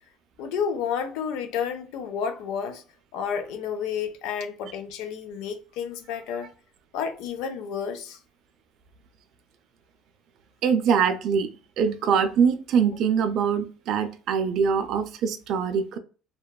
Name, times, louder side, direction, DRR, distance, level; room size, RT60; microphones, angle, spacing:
voice 1, 0.4-2.8 3.1-6.5 6.9-8.2, left 7 dB, 75° left, 0.5 m, -31 dB
voice 2, 10.6-11.5 11.8-16.0, right 6 dB, 50° right, 0.3 m, -23 dB
2.8 x 2.2 x 2.2 m
cardioid pair, 160°, 0 cm